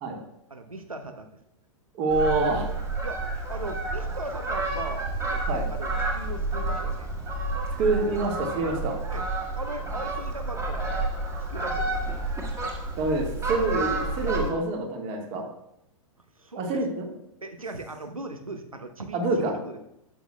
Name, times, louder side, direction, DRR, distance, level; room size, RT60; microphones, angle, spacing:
voice 1, 0.5-1.3 3.0-3.2 3.5-7.2 9.1-9.3 9.5-11.1 11.5-12.2 16.3-16.8 17.4-19.8, right 2 dB, 90° right, 6 dB, 0.7 m, -38 dB
voice 2, 1.9-2.7 5.5-5.7 7.8-9.0 13.0-15.5 16.6-17.1 19.1-19.5, right 2 dB, 35° right, 1 dB, 1.8 m, -26 dB
Fowl, 2.1-14.5, right 2 dB, 15° right, 1.6 m, -30 dB
12.0 x 8.3 x 2.3 m, 0.81 s
figure-of-eight pair, 100°, 17 cm